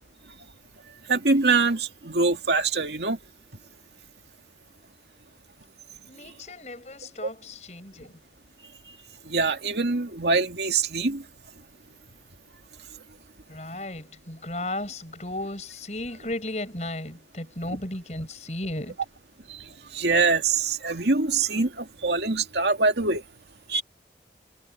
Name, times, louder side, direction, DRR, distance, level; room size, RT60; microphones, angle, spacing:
voice 1, 1.1-3.2 9.3-11.2 19.5-19.7 19.9-23.2 23.7-23.8, right 3 dB, 80° right, 2.3 m, -24 dB
voice 2, 6.1-8.2 13.5-19.0, left 1 dB, 40° left, 6.8 m, -35 dB
head